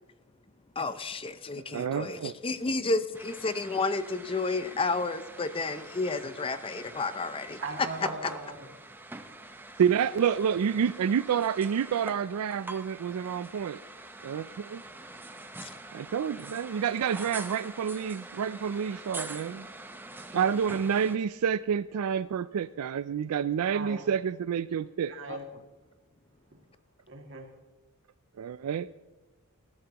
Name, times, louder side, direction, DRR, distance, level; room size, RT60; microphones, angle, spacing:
voice 1, 0.8-7.9 8.2-8.3 25.3-25.4, left 3 dB, 25° left, 12 dB, 0.5 m, -31 dB
voice 2, 1.7-2.3 9.8-13.8 14.2-14.8 15.9-19.7 20.3-25.1 28.4-28.9, right 7 dB, 85° right, 15 dB, 0.4 m, -28 dB
sound 1, 3.1-21.2, right 2 dB, 10° right, 0.8 m, -45 dB
voice 3, 7.6-8.7 23.7-24.0 25.1-25.5 27.1-27.5, right 3 dB, 60° right, 2 dB, 2.2 m, -39 dB
19.5 x 12.5 x 2.9 m, 1.2 s
head